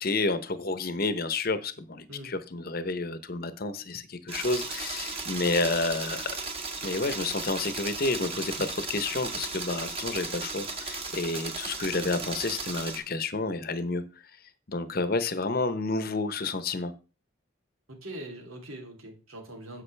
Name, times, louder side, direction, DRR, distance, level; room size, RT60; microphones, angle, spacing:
voice 1, 0.0-6.3 6.8-14.0 14.7-16.9, left 3 dB, 45° left, 0.9 m, -30 dB
sound 1, 4.3-13.0, right 4 dB, 25° right, 1.5 m, -36 dB
voice 2, 17.9-19.8, right 1 dB, 80° right, 3.0 m, -42 dB
9.9 x 7.6 x 3.4 m
head